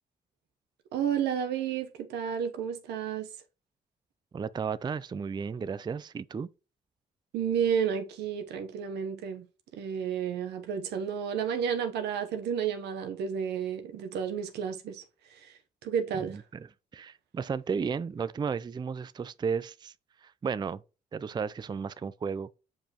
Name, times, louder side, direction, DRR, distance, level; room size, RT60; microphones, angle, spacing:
voice 1, 0.9-3.3 7.3-9.5 9.7-15.0 15.3-15.5 15.8-16.4, right 8 dB, 90° right, 0.9 m, -31 dB
voice 2, 4.3-6.5 16.1-16.7 16.9-19.9 20.2-20.8 21.1-22.5, right 6 dB, 25° right, 0.4 m, -34 dB
7.2 x 5.1 x 3.0 m
supercardioid pair, 65°, 17 cm